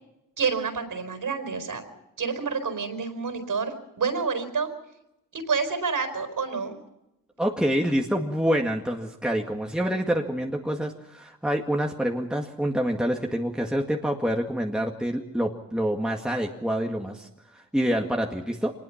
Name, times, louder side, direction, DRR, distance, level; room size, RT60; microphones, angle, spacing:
voice 1, 0.4-1.8 2.2-4.7 5.3-6.8, right 5 dB, 60° right, 8 dB, 4.6 m, -28 dB
voice 2, 7.4-17.3 17.5-18.7, equal, ahead, 1 dB, 2.0 m, -27 dB
24.0 x 20.5 x 5.9 m, 0.89 s
cardioid pair, 75°, 37 cm